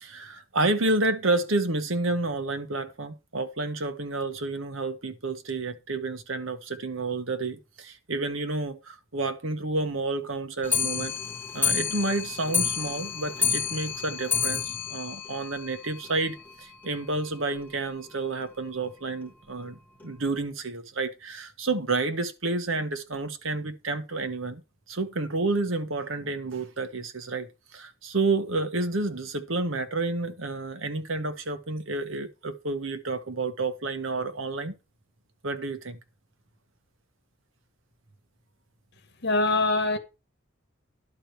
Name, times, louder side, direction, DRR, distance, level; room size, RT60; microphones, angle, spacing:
voice 1, 0.0-11.2 11.5-24.6 24.9-34.7 35.4-36.0, right 3 dB, 70° right, 1.4 m, -30 dB
Clock, 10.6-16.1 16.5-16.6 16.8-16.9 17.2-17.3 17.6-17.7 18.4-18.5 19.2-19.3 20.0-20.1, left 6 dB, 10° left, 1.8 m, -29 dB
voice 2, 39.2-40.0, left 2 dB, 55° left, 1.6 m, -23 dB
11.0 x 4.5 x 6.8 m
head